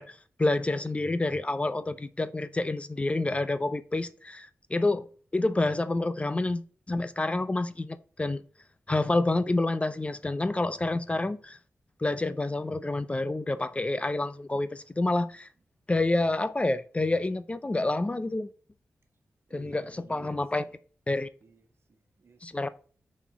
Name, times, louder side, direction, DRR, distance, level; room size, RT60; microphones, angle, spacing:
voice 1, 0.0-6.6 6.9-8.4 8.9-11.6 12.0-15.5 15.9-18.5 19.5-20.6 21.1-21.3 22.4-22.7, left 2 dB, 25° left, 0.5 m, -28 dB
voice 2, 19.5-20.7 21.4-22.6, right 4 dB, 55° right, 1.4 m, -55 dB
5.7 x 4.3 x 6.0 m
cardioid pair, 60°, 5 cm